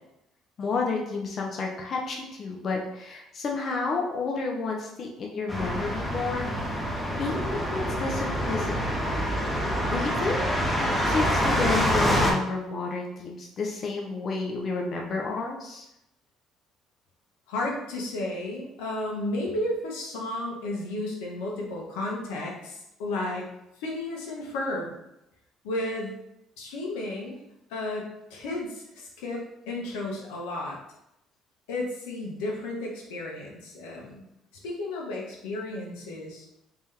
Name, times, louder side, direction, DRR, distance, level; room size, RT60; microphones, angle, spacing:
voice 1, 0.6-6.5 7.2-8.7 9.5-10.5 11.1-15.9, left 4 dB, 50° left, 0 dB, 0.6 m, -31 dB
sound 1, 5.5-12.3, equal, 5° left, 0.9 m, -26 dB
voice 2, 17.5-23.5 23.8-25.0 25.6-26.1 26.6-27.4 27.7-30.8 31.7-34.2 34.6-36.5, left 1 dB, 85° left, -2 dB, 0.9 m, -33 dB
3.5 x 2.9 x 3.3 m, 0.84 s
supercardioid pair, 75°, 0 cm